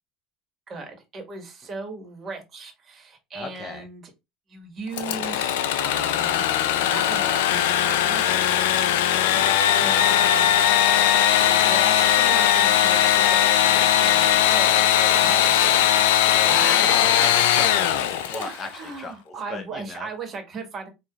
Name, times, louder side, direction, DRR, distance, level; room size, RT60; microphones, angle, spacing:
voice 1, 0.7-4.0 4.5-6.4 6.7-8.6 9.8-10.7 11.4-15.9 16.3-17.1 18.2-20.9, right 3 dB, 40° right, 4 dB, 1.6 m, -37 dB
voice 2, 3.3-3.9 9.2-9.6 16.3-18.7 19.0-20.1, left 4 dB, 30° left, 4 dB, 0.7 m, -35 dB
Engine / Sawing, 4.9-18.6, left 11 dB, 85° left, 0.4 m, -19 dB
4.7 x 2.8 x 2.4 m, 0.23 s
supercardioid pair, 90°, 0 cm